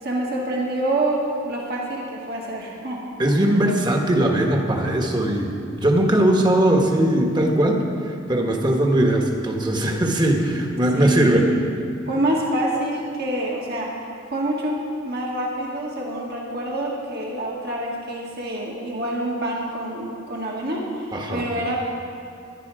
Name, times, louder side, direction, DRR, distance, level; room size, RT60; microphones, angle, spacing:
voice 1, 0.0-3.0 10.9-11.6 12.1-13.9 14.3-14.8 15.0-21.8, right 1 dB, 55° right, -3 dB, 2.1 m, -27 dB
voice 2, 3.2-11.5 21.1-21.4, right 1 dB, 25° right, 2 dB, 1.4 m, -20 dB
17.5 x 11.5 x 4.9 m, 2.6 s
head